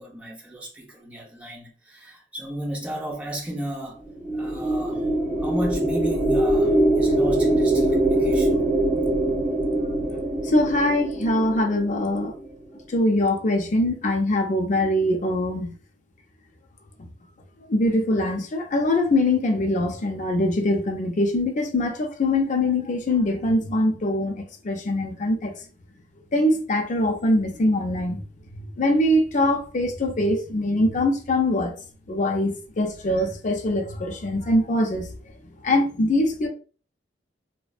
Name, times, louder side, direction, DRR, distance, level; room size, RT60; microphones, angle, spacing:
voice 1, 0.0-4.0 4.3-5.1 5.4-8.8, right 1 dB, 10° right, 0.6 m, -34 dB
sound 1, 4.0-12.5, right 1 dB, 40° right, 1.2 m, -23 dB
voice 2, 10.1-12.3 12.9-15.7 17.7-25.5 26.3-28.2 28.5-31.7 32.1-35.1 35.6-36.5, left 1 dB, 45° left, 0.5 m, -23 dB
2.5 x 2.1 x 2.4 m
head